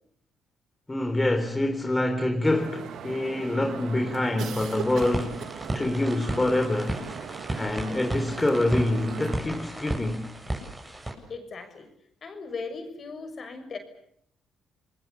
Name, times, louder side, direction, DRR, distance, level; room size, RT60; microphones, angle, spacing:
voice 1, 0.9-5.4 5.7-7.0 7.6-10.3, left 1 dB, 20° left, 3.8 m, -26 dB
sound 1, 2.4-9.4, right 8 dB, 70° right, 2.1 m, -39 dB
sound 2, 4.6-11.1, right 1 dB, 15° right, 8.0 m, -34 dB
voice 2, 11.3-11.9 12.2-13.8, left 4 dB, 50° left, 6.5 m, -38 dB
29.0 x 20.5 x 8.5 m
cardioid pair, 70°, 0 cm